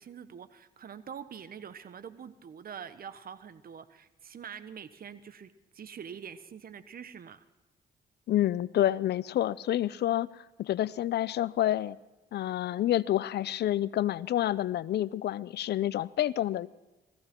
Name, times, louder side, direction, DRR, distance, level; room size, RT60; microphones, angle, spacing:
voice 1, 0.0-7.5, right 7 dB, 55° right, 13 dB, 1.3 m, -45 dB
voice 2, 8.3-12.0 12.3-16.7, left 12 dB, 65° left, 20 dB, 0.6 m, -28 dB
19.0 x 16.5 x 4.5 m, 1.1 s
supercardioid pair, 60°, 18 cm